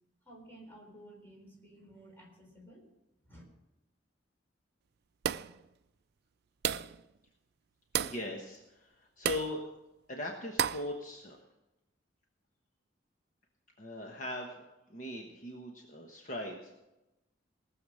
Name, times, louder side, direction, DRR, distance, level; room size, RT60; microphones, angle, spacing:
voice 1, 0.3-2.9 3.2-3.4, right 1 dB, 10° left, -2 dB, 3.7 m, -54 dB
sound 1, 5.2-5.6 6.6-7.0 7.9-8.2 9.3-9.5 10.6-10.9, right 9 dB, 55° right, 0.4 m, -32 dB
voice 2, 8.0-9.6 10.1-11.4 13.8-14.6 14.9-16.8, left 1 dB, 45° left, 1 dB, 1.2 m, -40 dB
18.5 x 7.1 x 6.4 m, 0.97 s
head